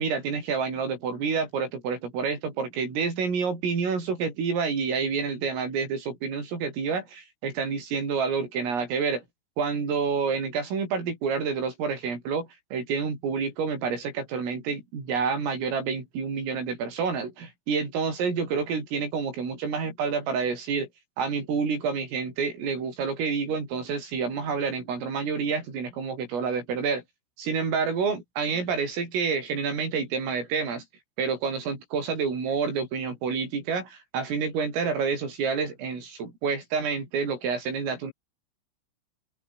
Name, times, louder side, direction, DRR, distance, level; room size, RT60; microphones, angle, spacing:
voice 1, 0.0-9.2 9.6-20.9 21.2-27.0 27.4-30.8 31.2-38.1, right 5 dB, 75° right, 10.0 m, -28 dB
open air
omnidirectional pair, 5.9 m